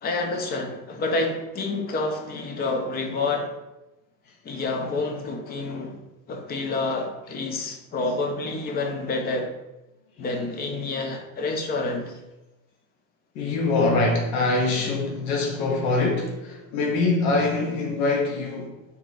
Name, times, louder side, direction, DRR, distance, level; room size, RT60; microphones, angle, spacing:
voice 1, 0.0-3.5 4.4-6.0 6.3-9.5 10.2-12.2, left 3 dB, 25° left, 0.3 m, -28 dB
voice 2, 13.3-18.8, left 3 dB, 90° left, 0.8 m, -24 dB
2.7 x 2.4 x 3.8 m
cardioid pair, 130°, 41 cm